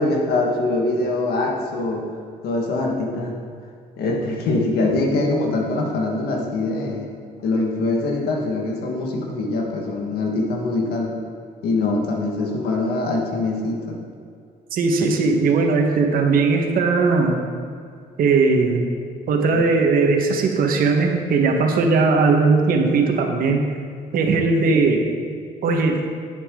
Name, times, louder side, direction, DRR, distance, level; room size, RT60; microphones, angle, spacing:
voice 1, 0.0-2.0 2.4-3.4 4.0-7.1 7.4-11.1 11.6-14.0, left 2 dB, 80° left, 0 dB, 1.7 m, -23 dB
voice 2, 14.7-17.4 18.2-18.9 19.3-23.6 24.1-25.0 25.6-26.0, right 4 dB, 65° right, 2 dB, 1.4 m, -18 dB
10.5 x 8.2 x 3.8 m, 2.2 s
cardioid pair, 110°, 16 cm